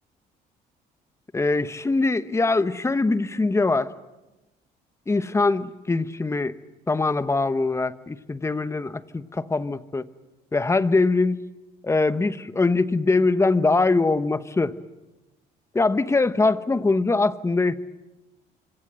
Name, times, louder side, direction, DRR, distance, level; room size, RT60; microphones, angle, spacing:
voice 1, 1.3-3.9 5.1-6.5 6.9-10.0 10.5-11.4 11.8-14.7 15.7-17.8, left 3 dB, 15° left, 13 dB, 1.1 m, -22 dB
25.5 x 24.5 x 7.8 m, 1.0 s
cardioid pair, 110°, 17 cm